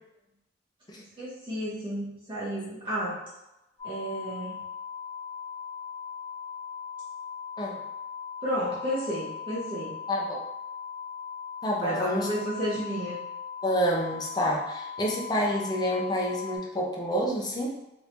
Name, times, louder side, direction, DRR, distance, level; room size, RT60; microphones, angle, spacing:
voice 1, 1.0-3.2 3.8-4.6 8.4-10.0 11.8-13.2, equal, 30° right, -10 dB, 0.9 m, -32 dB
sound 1, 3.8-16.6, left 7 dB, 45° left, 1.3 m, -39 dB
voice 2, 10.1-10.4 11.6-12.3 13.6-17.7, equal, 20° left, -2 dB, 0.6 m, -28 dB
3.0 x 2.6 x 3.2 m, 0.93 s
head